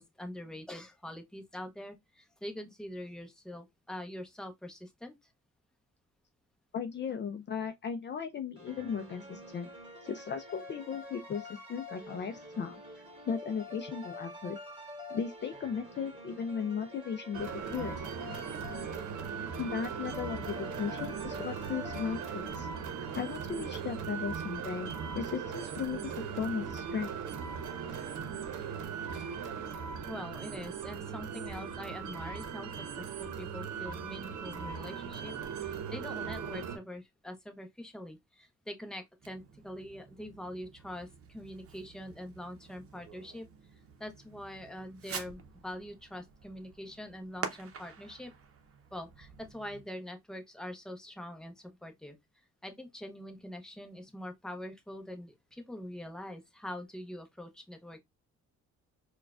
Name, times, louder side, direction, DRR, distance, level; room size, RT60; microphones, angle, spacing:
voice 1, 0.0-5.2 30.1-35.3 35.6-43.5 44.0-48.3 48.9-52.2 52.6-58.0, left 1 dB, ahead, 0.8 m, -44 dB
voice 2, 6.7-9.7 10.0-12.8 13.3-14.6 15.1-18.0 19.6-22.7 23.1-27.1, left 6 dB, 40° left, 0.4 m, -36 dB
sound 1, 8.5-22.9, left 1 dB, 20° right, 2.1 m, -47 dB
sound 2, 17.3-36.8, right 6 dB, 80° right, 0.8 m, -39 dB
Fireworks, 39.2-49.9, right 6 dB, 50° right, 0.8 m, -48 dB
4.5 x 2.3 x 2.4 m
cardioid pair, 90°, 30 cm